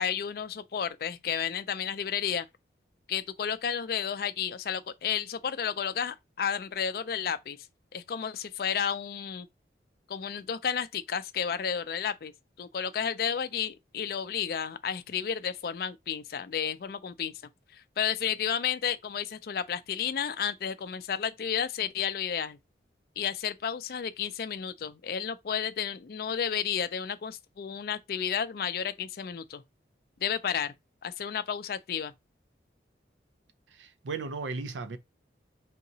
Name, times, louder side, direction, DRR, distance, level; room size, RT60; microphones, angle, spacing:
voice 1, 0.0-2.5 3.1-7.6 7.9-9.5 10.1-12.3 12.6-17.3 17.7-22.6 23.2-29.6 30.2-30.7 31.0-32.1, left 8 dB, 55° left, 0.4 m, -32 dB
voice 2, 33.7-35.0, right 4 dB, 90° right, 0.5 m, -36 dB
3.7 x 2.9 x 2.7 m
head